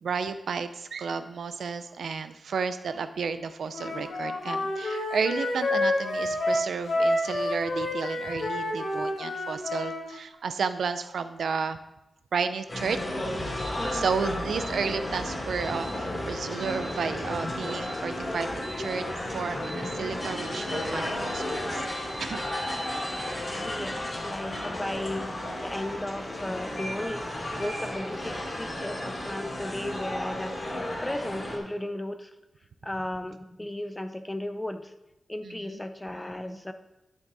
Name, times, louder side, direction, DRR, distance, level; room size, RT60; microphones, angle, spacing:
voice 1, 0.0-11.8 12.3-13.1 13.9-21.8 22.2-22.4 35.4-35.8, right 5 dB, 80° right, 11 dB, 0.5 m, -32 dB
Wind instrument woodwind instrument, 3.7-10.0, left 1 dB, 80° left, 3.5 m, -28 dB
sound 1, 12.7-31.6, left 1 dB, 30° left, 2.6 m, -33 dB
sound 2, 13.6-13.9 14.6-14.9 15.6-15.9 16.6-16.9 17.6-17.9 18.6-18.9 19.6-19.9 20.5-20.8 21.3-21.6 21.9-23.3, right 2 dB, 30° right, 2.6 m, -43 dB
voice 2, 13.8-14.1 23.6-25.3 25.6-32.3 32.8-34.9 35.3-36.7, left 1 dB, 10° left, 9 dB, 0.6 m, -35 dB
11.0 x 7.1 x 4.0 m, 0.94 s
wide cardioid pair, 155°, 0 cm